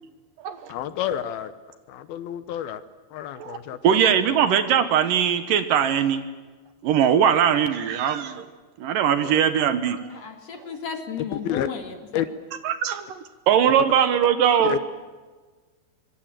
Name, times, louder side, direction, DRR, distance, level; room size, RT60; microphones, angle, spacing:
voice 1, 0.7-1.5 1.9-2.8 3.1-4.4 9.2-9.5 11.3-11.7 12.1-12.3 14.6-14.8, left 10 dB, 75° left, 12 dB, 2.8 m, -30 dB
voice 2, 3.8-6.2 6.8-8.4 8.8-10.0 12.6-13.0 13.5-14.8, right 8 dB, 70° right, 11 dB, 2.6 m, -20 dB
voice 3, 10.1-11.9, left 6 dB, 45° left, 6 dB, 3.0 m, -34 dB
25.0 x 24.5 x 7.6 m, 1.4 s
omnidirectional pair, 4.5 m